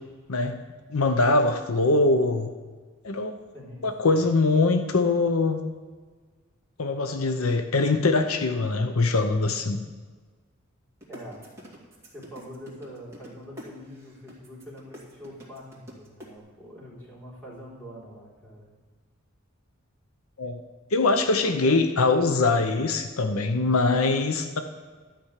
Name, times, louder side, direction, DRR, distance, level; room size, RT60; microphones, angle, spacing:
voice 1, 0.3-0.6 0.9-2.5 3.0-3.3 3.8-5.6 6.8-9.8 20.4-20.6 20.9-24.6, left 3 dB, 80° left, 7 dB, 0.8 m, -23 dB
voice 2, 3.5-4.2 11.1-11.4 12.1-18.7 21.4-21.8, equal, 10° left, -7 dB, 3.8 m, -44 dB
sound 1, 11.0-16.3, equal, 15° right, 2.4 m, -45 dB
12.0 x 6.1 x 8.2 m, 1.4 s
head